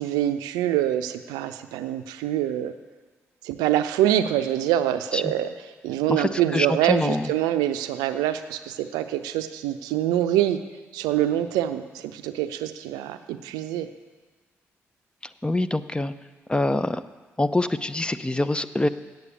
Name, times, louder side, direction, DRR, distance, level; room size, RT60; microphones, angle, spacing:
voice 1, 0.0-2.7 3.4-5.5 5.8-10.6 10.9-13.9, right 12 dB, 80° right, 10 dB, 0.5 m, -25 dB
voice 2, 6.1-7.3 15.4-16.1 16.5-17.0 17.4-18.9, left 2 dB, 15° left, 12 dB, 0.6 m, -25 dB
8.2 x 8.0 x 8.6 m, 1.4 s
hypercardioid pair, 40°, 7 cm